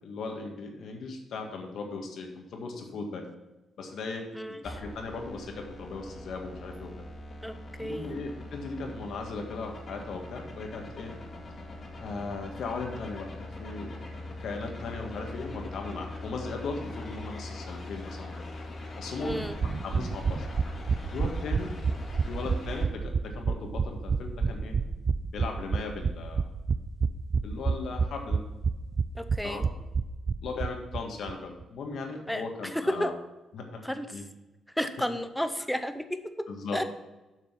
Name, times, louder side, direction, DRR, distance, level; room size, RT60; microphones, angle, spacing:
voice 1, 0.0-3.2 3.8-6.9 7.8-11.1 12.0-13.9 14.4-18.3 19.0-19.4 19.8-20.5 21.1-21.7 22.3-24.8 25.3-26.5 27.4-28.4 29.4-29.7 30.4-33.1 33.5-33.8 34.1-34.2 36.5-36.8, left 3 dB, 75° left, 2 dB, 1.7 m, -37 dB
sound 1, 4.6-22.8, left 1 dB, 40° left, 2.1 m, -42 dB
voice 2, 7.4-8.2 19.2-19.6 29.1-29.6 32.3-33.1 33.8-34.2 34.7-36.5 36.7-36.8, equal, 5° left, 9 dB, 0.7 m, -32 dB
sound 2, 19.3-31.0 31.3-31.4 31.6-31.7, right 5 dB, 45° right, 0.4 m, -29 dB
7.9 x 6.1 x 5.8 m, 1.1 s
cardioid pair, 90°, 0 cm